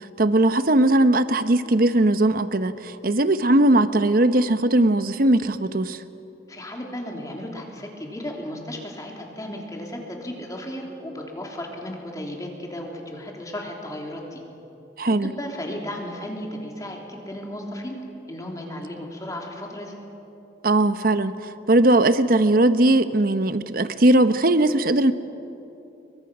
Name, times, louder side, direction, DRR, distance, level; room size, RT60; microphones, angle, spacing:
voice 1, 0.2-6.0 15.0-15.3 20.6-21.3 21.7-25.1, right 1 dB, 55° right, 0.9 m, -19 dB
voice 2, 6.5-14.4 15.1-18.0 18.3-19.9, left 1 dB, 20° left, 3.2 m, -35 dB
30.0 x 23.0 x 6.1 m
head